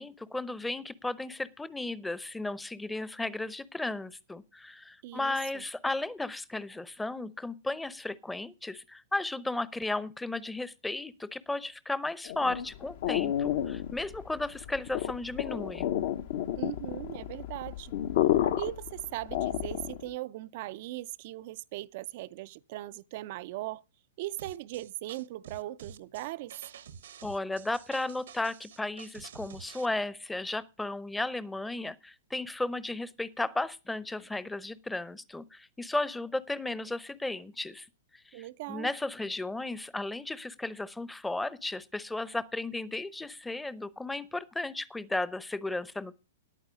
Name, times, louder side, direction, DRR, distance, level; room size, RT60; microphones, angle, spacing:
voice 1, 0.0-15.9 27.2-37.9 38.3-46.2, left 2 dB, 5° left, 0.8 m, -34 dB
voice 2, 5.0-5.6 16.6-17.9 18.6-23.8 24.2-26.5 38.3-38.9, right 16 dB, 50° right, 0.5 m, -39 dB
sound 1, 12.2-20.1, left 11 dB, 55° left, 1.0 m, -31 dB
sound 2, 24.4-29.9, right 8 dB, 70° right, 1.0 m, -49 dB
11.0 x 9.2 x 5.1 m
hypercardioid pair, 120°, 0 cm